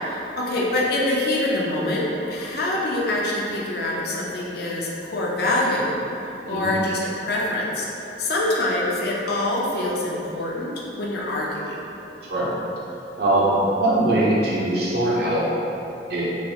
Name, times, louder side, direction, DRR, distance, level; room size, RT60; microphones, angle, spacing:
voice 1, 0.0-11.8, left 1 dB, 60° left, -4 dB, 0.4 m, -25 dB
voice 2, 6.5-6.8 12.3-12.5 13.2-15.5 16.1-16.3, right 1 dB, 60° right, -6 dB, 0.6 m, -21 dB
3.1 x 2.3 x 2.8 m, 2.9 s
head